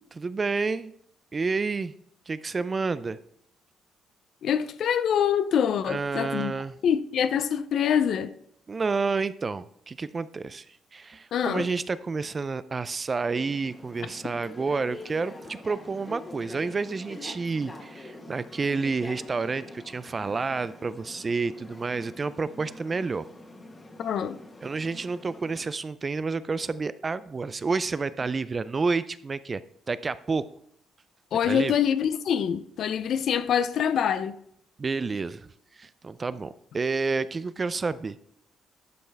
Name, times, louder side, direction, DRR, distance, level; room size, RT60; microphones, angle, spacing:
voice 1, 0.2-0.9 1.3-1.9 2.3-3.2 5.9-6.7 8.7-10.7 10.9-23.3 24.6-29.6 29.9-30.5 31.4-31.7 34.8-35.5 35.7-38.2, right 4 dB, 35° right, 0.4 m, -29 dB
voice 2, 4.4-6.5 6.8-8.3 11.3-11.7 24.0-24.4 31.3-34.4, left 8 dB, 70° left, 0.5 m, -25 dB
sound 1, 13.3-25.6, left 1 dB, 25° left, 1.5 m, -45 dB
12.0 x 5.4 x 3.4 m
cardioid pair, 90°, 0 cm